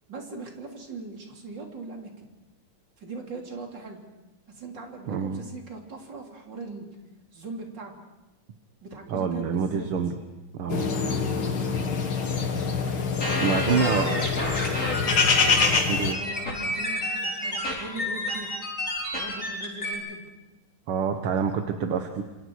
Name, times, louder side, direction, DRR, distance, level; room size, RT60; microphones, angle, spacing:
voice 1, 0.1-2.3 3.0-4.0 4.5-6.9 7.3-8.0 8.8-9.9 10.6-12.0 13.2-14.1 15.4-18.5 19.1-20.3, right 3 dB, 55° right, 1 dB, 3.8 m, -40 dB
voice 2, 5.1-5.4 9.1-10.2 10.5-10.9 13.4-14.1 15.9-16.2 20.9-22.2, right 6 dB, 75° right, 5 dB, 2.1 m, -26 dB
sound 1, 10.7-16.1, left 5 dB, 70° left, 2.7 m, -25 dB
sound 2, 13.2-19.9, left 1 dB, 35° left, 5.7 m, -30 dB
27.5 x 27.0 x 4.8 m, 1.0 s
omnidirectional pair, 2.4 m